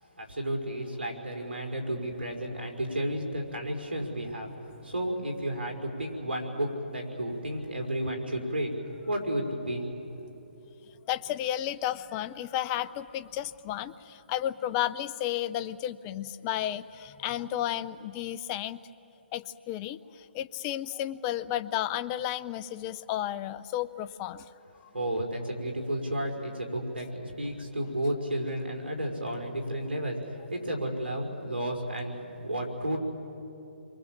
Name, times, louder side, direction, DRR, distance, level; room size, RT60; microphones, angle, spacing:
voice 1, 0.2-8.7 9.1-9.8 24.9-33.0, right 1 dB, 80° right, 2 dB, 5.1 m, -32 dB
voice 2, 11.1-18.8 19.3-24.5, left 12 dB, 25° left, 13 dB, 0.7 m, -33 dB
29.5 x 23.5 x 7.4 m, 3.0 s
figure-of-eight pair, 140°, 6 cm